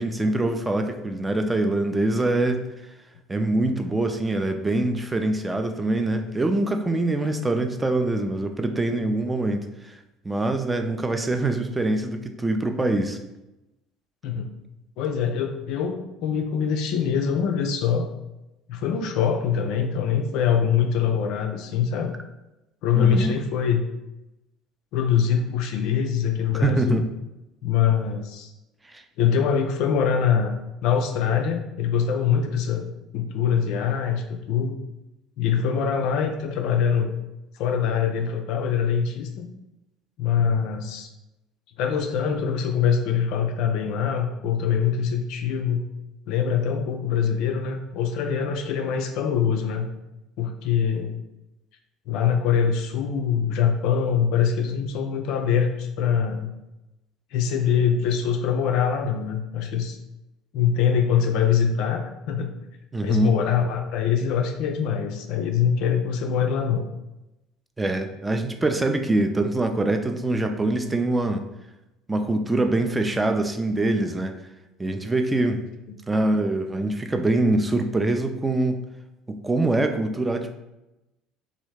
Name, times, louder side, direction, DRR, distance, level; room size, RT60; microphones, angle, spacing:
voice 1, 0.0-2.6 3.3-10.0 10.2-13.2 23.0-23.4 26.5-27.0 28.9-29.0 62.9-63.3 67.8-71.4 72.1-74.3 74.8-75.6 76.1-78.8 79.3-80.5, right 2 dB, 15° right, 6 dB, 0.4 m, -24 dB
voice 2, 15.0-18.1 18.7-22.1 22.8-23.8 24.9-27.0 27.6-28.5 29.2-30.5 30.8-34.8 35.4-37.1 37.5-39.5 40.2-41.1 41.8-45.9 46.3-49.9 50.4-51.2 52.1-56.5 57.3-60.0 60.5-62.5 63.0-66.8, left 7 dB, 60° left, 5 dB, 0.3 m, -23 dB
3.0 x 2.4 x 3.2 m, 0.95 s
hypercardioid pair, 60°, 0 cm